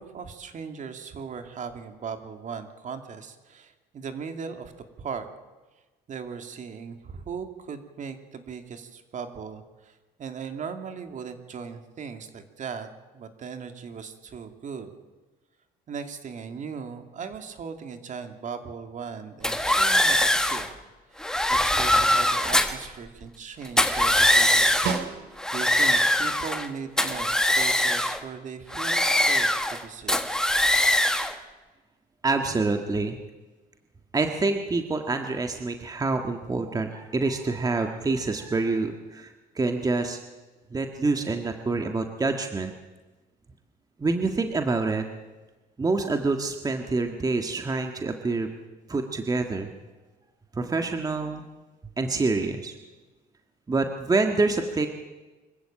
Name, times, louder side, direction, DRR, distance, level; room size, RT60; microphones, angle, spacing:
voice 1, 0.0-4.7 5.0-5.3 6.1-14.9 15.9-20.7 21.1-24.8 25.5-30.3, right 6 dB, 50° right, 7 dB, 2.5 m, -38 dB
sound 1, 19.4-20.7 21.2-22.9 23.7-25.0 25.4-26.7 27.0-28.2 28.7-29.8 30.1-31.3, left 1 dB, 5° left, 1.6 m, -22 dB
Snare drum, 24.9-25.8 30.2-30.3, right 7 dB, 75° right, 2.5 m, -32 dB
voice 2, 32.2-33.2 34.1-39.3 39.5-40.2 40.7-42.7 44.0-45.0 45.8-48.5 48.9-49.7 50.5-51.5 52.0-52.7 53.7-54.9, right 3 dB, 20° right, 5 dB, 1.7 m, -26 dB
25.0 x 14.5 x 8.8 m, 1.2 s
cardioid pair, 110°, 17 cm